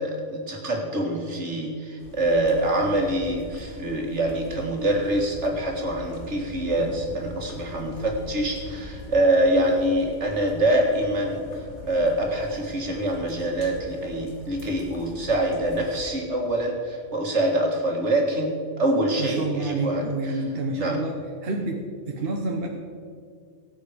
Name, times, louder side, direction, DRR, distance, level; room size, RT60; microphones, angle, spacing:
voice 1, 0.0-11.4 11.9-20.0 20.8-21.0, right 1 dB, 75° right, 1 dB, 2.3 m, -25 dB
sound 1, 2.0-16.1, left 2 dB, 75° left, 1.8 m, -42 dB
voice 2, 19.2-21.1 21.4-22.7, right 3 dB, 60° right, 2 dB, 1.2 m, -28 dB
17.0 x 8.0 x 5.0 m, 2.2 s
omnidirectional pair, 1.2 m